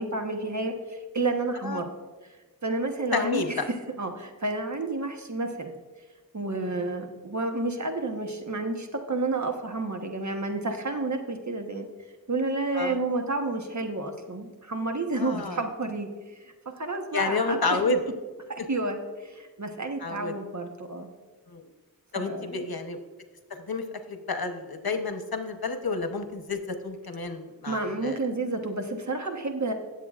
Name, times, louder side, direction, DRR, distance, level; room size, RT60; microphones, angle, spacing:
voice 1, 0.0-1.9 2.6-5.8 6.3-11.9 12.3-17.6 18.5-21.1 22.1-22.6 27.7-29.7, right 2 dB, 50° right, 4 dB, 1.1 m, -30 dB
voice 2, 3.1-3.7 6.7-7.0 12.7-13.0 15.2-15.6 17.1-18.0 20.0-20.3 21.5-21.7 22.1-23.0 23.5-28.2, left 3 dB, 80° left, 6 dB, 0.9 m, -30 dB
19.0 x 7.9 x 2.4 m, 1.3 s
wide cardioid pair, 45°, 36 cm